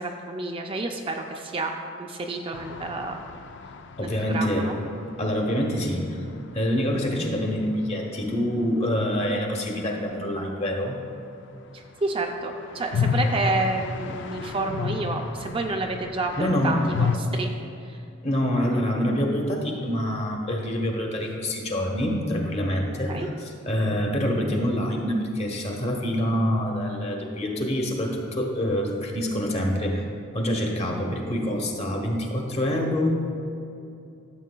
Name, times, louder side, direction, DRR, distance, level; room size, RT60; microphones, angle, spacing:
voice 1, 0.0-1.7 2.0-3.2 4.0-4.8 11.7-17.5 17.8-18.0 23.1-23.3, right 2 dB, 25° right, 2 dB, 0.4 m, -29 dB
sound 1, 2.5-6.3 6.6-6.7 6.9-7.0 12.0-17.2, left 5 dB, 60° left, 0.4 m, -31 dB
voice 2, 4.0-4.7 5.2-6.3 6.5-11.0 16.4-16.9 18.2-23.3 23.6-30.0 30.3-33.1, equal, 30° left, 1 dB, 1.0 m, -26 dB
13.0 x 7.4 x 2.2 m, 2.7 s
head